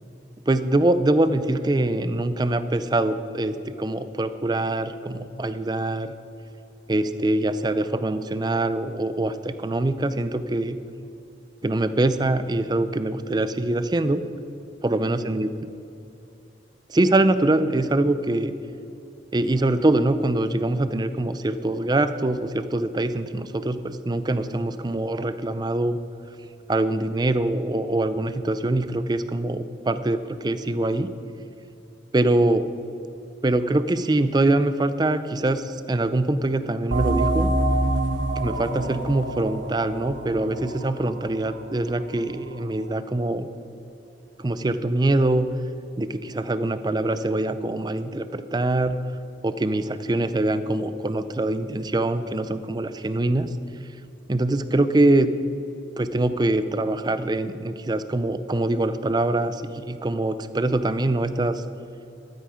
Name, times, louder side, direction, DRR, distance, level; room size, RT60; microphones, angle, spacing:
voice 1, 0.5-6.1 6.9-10.8 11.6-14.2 14.8-15.5 16.9-18.5 19.3-26.0 26.7-31.1 32.1-32.7 33.4-37.5 38.4-43.5 44.4-45.5 46.0-49.0 49.4-53.5 54.3-55.3 56.0-61.6, right 2 dB, 25° right, 12 dB, 0.4 m, -23 dB
sound 1, 36.9-42.2, right 2 dB, 90° right, 1.0 m, -26 dB
13.0 x 9.2 x 4.9 m, 2.8 s
head